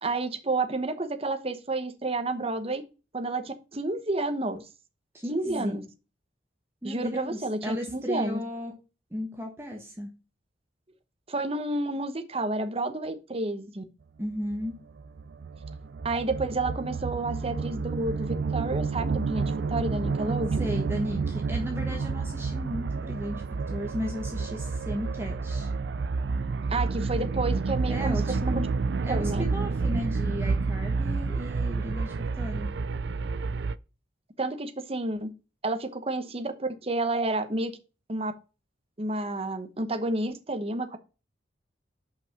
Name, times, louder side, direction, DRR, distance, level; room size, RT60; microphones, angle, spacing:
voice 1, 0.0-2.8 3.1-4.7 5.3-5.9 6.8-8.4 11.3-13.8 16.0-20.7 26.7-28.6 29.1-29.4 34.4-35.3 35.6-37.7 38.1-38.3 39.0-41.0, right 2 dB, 30° right, 8 dB, 1.0 m, -30 dB
voice 2, 5.1-5.8 6.8-8.7 9.1-10.1 14.2-14.7 20.6-25.7 27.9-28.8 29.0-32.7, equal, 15° right, 1 dB, 1.3 m, -35 dB
sound 1, 14.5-33.7, right 4 dB, 65° right, 0.4 m, -30 dB
5.7 x 5.5 x 6.0 m, 0.31 s
head